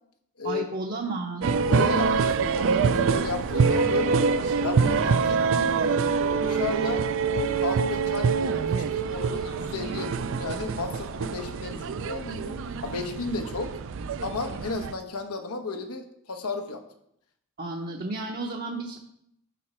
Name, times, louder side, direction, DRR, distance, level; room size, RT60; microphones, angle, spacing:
voice 1, 0.4-1.4 17.6-19.0, right 3 dB, 45° right, 0 dB, 0.8 m, -32 dB
sound 1, 1.4-14.9, right 5 dB, 60° right, 0.4 m, -25 dB
voice 2, 1.7-6.0 6.4-8.3 8.8-13.7 14.2-16.8, left 3 dB, 90° left, 5 dB, 1.1 m, -33 dB
11.0 x 4.8 x 4.3 m, 0.75 s
head